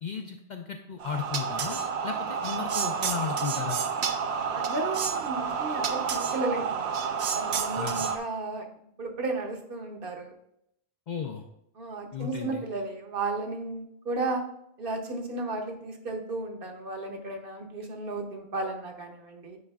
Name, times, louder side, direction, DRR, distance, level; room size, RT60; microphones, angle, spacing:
voice 1, 0.0-3.8 7.8-8.1 11.1-11.5 12.1-12.7, left 7 dB, 55° left, 3 dB, 0.5 m, -35 dB
sound 1, 1.0-8.2, right 6 dB, 85° right, 0.9 m, -30 dB
voice 2, 4.5-7.0 7.3-8.6 9.0-10.3 11.8-14.4 14.8-19.6, right 2 dB, 60° right, 3 dB, 0.9 m, -34 dB
8.6 x 4.9 x 2.3 m, 0.75 s
omnidirectional pair, 1.1 m